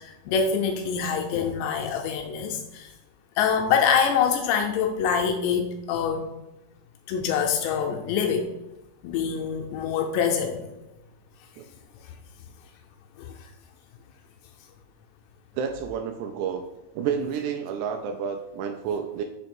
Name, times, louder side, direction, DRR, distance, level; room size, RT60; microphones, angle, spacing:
voice 1, 0.0-2.9 3.4-6.3 7.1-8.5 9.0-10.6 13.2-13.3, left 7 dB, 85° left, 4 dB, 2.5 m, -25 dB
voice 2, 15.6-16.6 17.0-19.2, right 7 dB, 85° right, 5 dB, 2.5 m, -30 dB
6.6 x 2.8 x 5.3 m, 0.96 s
omnidirectional pair, 5.1 m